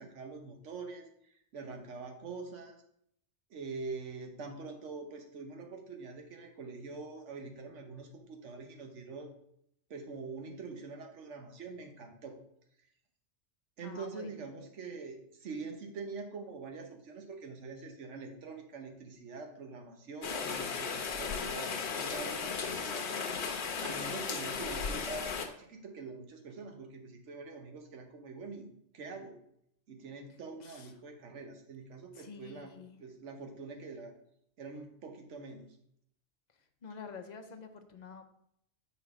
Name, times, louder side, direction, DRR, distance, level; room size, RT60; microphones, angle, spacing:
voice 1, 0.0-2.8 3.5-9.3 9.9-12.4 13.8-23.2 23.8-28.7 28.9-29.4 29.9-32.7 33.0-34.1 34.6-35.7, right 4 dB, 85° right, 3 dB, 1.3 m, -44 dB
voice 2, 13.8-14.3 23.7-24.4 30.6-30.9 32.1-33.0 36.8-38.2, left 5 dB, 45° left, 7 dB, 0.6 m, -48 dB
Rain, 20.2-25.5, left 5 dB, 70° left, 1.0 m, -36 dB
5.8 x 4.1 x 4.8 m, 0.72 s
omnidirectional pair, 1.2 m